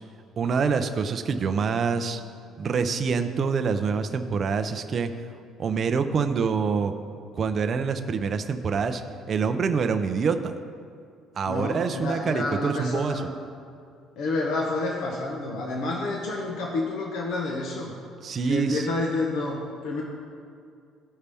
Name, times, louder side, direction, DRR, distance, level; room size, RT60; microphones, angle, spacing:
voice 1, 0.4-2.2 2.6-5.1 5.6-6.9 7.3-9.0 9.3-10.5 11.4-13.2 18.2-18.8, right 5 dB, 35° right, 8 dB, 0.5 m, -26 dB
voice 2, 11.4-13.3 14.2-18.0 18.5-20.0, left 2 dB, 65° left, -1 dB, 1.0 m, -29 dB
16.0 x 5.5 x 3.5 m, 2.4 s
cardioid pair, 160°, 0 cm